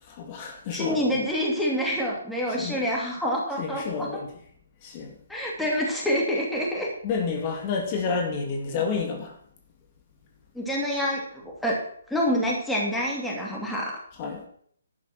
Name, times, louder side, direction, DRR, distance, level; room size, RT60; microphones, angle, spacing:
voice 1, 0.0-1.2 2.5-2.9 3.6-4.3 4.8-5.2 7.0-9.3 14.2-14.5, left 5 dB, 30° left, 2.6 m, -30 dB
voice 2, 0.7-4.1 5.3-6.9 10.5-11.8 12.1-14.0, equal, 5° left, 2.7 m, -27 dB
11.5 x 8.1 x 6.1 m
figure-of-eight pair, 140°, 0 cm